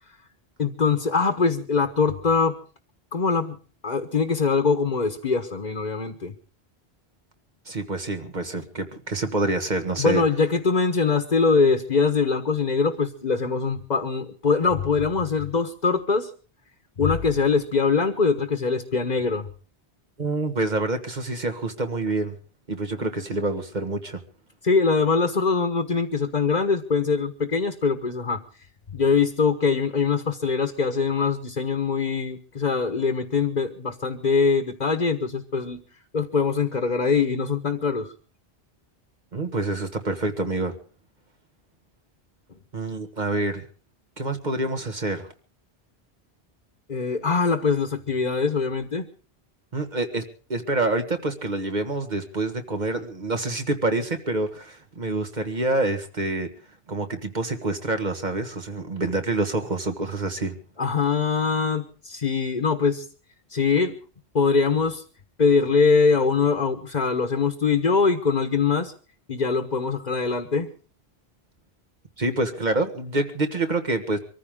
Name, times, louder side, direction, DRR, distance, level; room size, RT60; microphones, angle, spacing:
voice 1, 0.6-2.6 3.1-3.6 3.8-6.3 10.0-16.3 17.0-19.5 24.6-28.4 28.9-35.8 36.1-38.1 46.9-49.1 60.8-63.1 63.5-63.9 64.3-65.0 65.4-68.9 69.3-70.7, left 4 dB, 45° left, 6 dB, 1.3 m, -23 dB
voice 2, 7.7-10.2 20.2-22.4 22.7-24.2 39.3-40.7 42.7-43.7 44.2-45.3 49.7-50.2 50.5-56.5 56.9-60.5 72.2-74.2, right 2 dB, 45° right, 7 dB, 1.8 m, -27 dB
24.5 x 14.5 x 3.7 m, 0.39 s
omnidirectional pair, 1.1 m